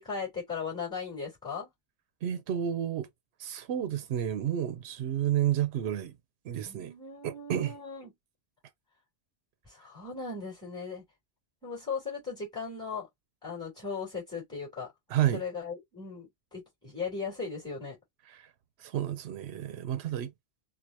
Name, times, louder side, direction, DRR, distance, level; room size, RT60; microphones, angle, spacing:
voice 1, 0.0-1.7 6.6-8.1 9.6-11.0 11.6-13.1 13.4-14.9 15.3-18.0, left 5 dB, 5° left, 2.8 m, -37 dB
voice 2, 2.2-3.1 3.4-6.1 6.4-6.9 7.2-7.7 15.1-15.4 18.3-18.5 18.8-20.3, right 10 dB, 85° right, 0.8 m, -30 dB
4.5 x 2.4 x 2.5 m
omnidirectional pair, 1.1 m